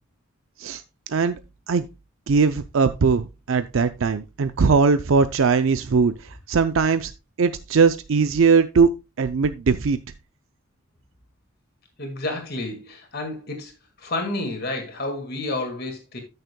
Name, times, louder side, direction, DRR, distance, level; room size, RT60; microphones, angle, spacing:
voice 1, 2.3-6.1 6.5-7.1 7.4-8.9 9.2-10.0, right 5 dB, 70° right, 0.5 m, -20 dB
voice 2, 12.0-13.7 14.0-16.2, left 2 dB, 50° left, 1.9 m, -30 dB
13.5 x 6.5 x 2.2 m
head